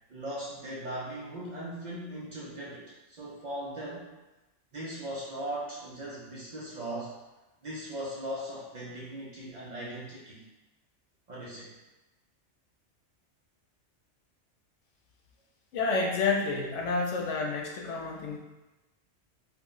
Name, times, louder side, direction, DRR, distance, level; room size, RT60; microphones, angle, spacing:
voice 1, 0.1-4.1 4.7-7.2 7.6-10.4 11.3-11.7, right 1 dB, 55° right, -6 dB, 0.5 m, -39 dB
voice 2, 15.7-18.4, left 4 dB, 85° left, 0 dB, 0.9 m, -29 dB
2.4 x 2.0 x 3.7 m, 1.1 s
omnidirectional pair, 1.2 m